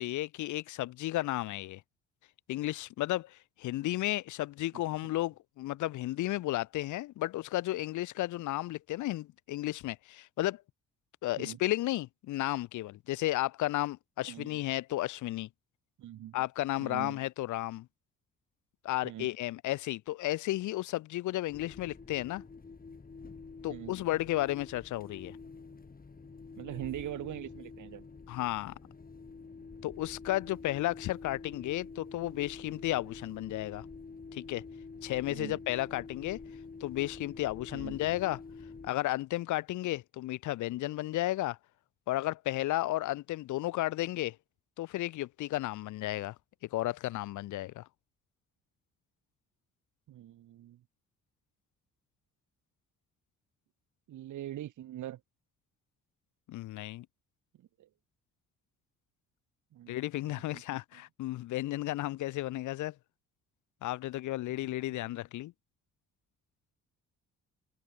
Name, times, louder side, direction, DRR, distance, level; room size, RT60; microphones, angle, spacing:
voice 1, 0.0-1.8 2.5-10.6 11.2-15.5 16.3-17.9 18.8-22.4 23.6-25.4 28.3-28.7 29.8-33.9 34.3-34.6 35.0-36.4 36.8-38.4 38.8-41.6 42.1-44.4 44.8-46.4 46.7-47.9 56.5-57.1 59.9-62.9 63.8-65.5, left 16 dB, 75° left, 0.7 m, -33 dB
voice 2, 16.0-16.4 16.8-17.2 19.0-19.3 23.7-23.9 26.6-28.1 35.3-35.6 37.7-38.0 50.1-50.8 54.1-55.2 57.6-57.9 59.7-60.0 60.3-60.6 60.9-61.0 64.5-65.0, right 12 dB, 80° right, 6.8 m, -42 dB
sound 1, 21.5-38.9, left 4 dB, 30° left, 6.6 m, -47 dB
cardioid pair, 90°, 30 cm